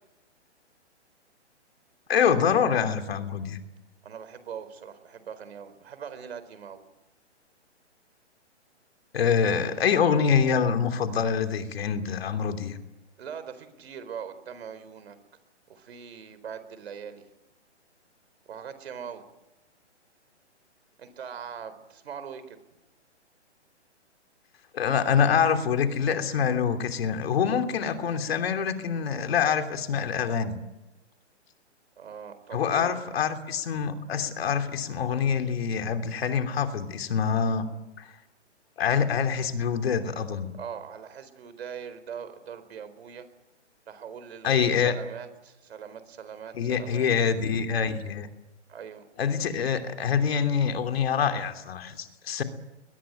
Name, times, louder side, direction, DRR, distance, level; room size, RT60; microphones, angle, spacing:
voice 1, 2.1-3.6 9.1-12.8 24.7-30.6 32.5-37.7 38.0-38.1 38.8-40.5 44.4-44.9 46.6-48.3 49.2-52.4, left 7 dB, 60° left, 7 dB, 3.1 m, -25 dB
voice 2, 4.0-6.8 12.1-12.2 13.2-15.2 15.7-17.3 18.5-19.3 21.0-22.6 32.0-32.9 40.6-43.3 43.9-47.1 48.7-49.1, right 7 dB, 60° right, 12 dB, 4.3 m, -41 dB
22.0 x 21.0 x 9.1 m, 0.99 s
hypercardioid pair, 145°, 35 cm